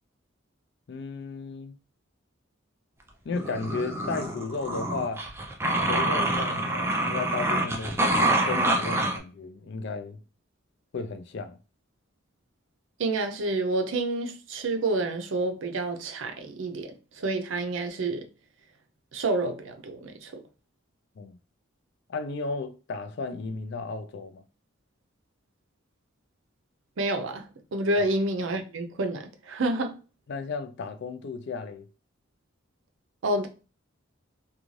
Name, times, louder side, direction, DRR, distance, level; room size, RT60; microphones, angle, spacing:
voice 1, 0.9-1.8 3.2-5.2 5.9-10.2 10.9-11.6 21.2-21.4 22.1-24.4 28.0-28.1 30.3-31.9, left 4 dB, 60° left, 0.4 m, -34 dB
sound 1, 3.3-9.2, right 1 dB, 15° right, 0.4 m, -26 dB
voice 2, 13.0-18.3 19.1-20.4 27.0-30.0 33.2-33.5, right 2 dB, 70° right, 0.5 m, -29 dB
2.5 x 2.3 x 3.1 m
head